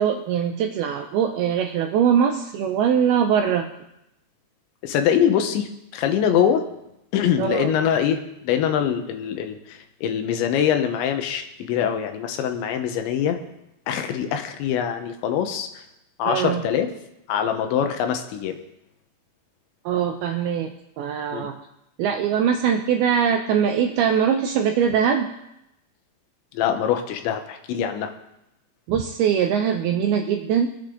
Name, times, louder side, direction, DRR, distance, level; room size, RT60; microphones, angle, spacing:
voice 1, 0.0-3.7 7.4-7.7 16.3-16.6 19.9-21.6 22.0-25.3 28.9-30.7, right 8 dB, 80° right, 5 dB, 2.3 m, -22 dB
voice 2, 4.8-6.6 7.1-13.4 13.9-15.7 16.2-16.9 17.3-18.6 21.3-21.5 26.5-28.1, left 9 dB, 80° left, 6 dB, 3.4 m, -23 dB
23.5 x 8.7 x 3.9 m, 0.85 s
omnidirectional pair, 5.2 m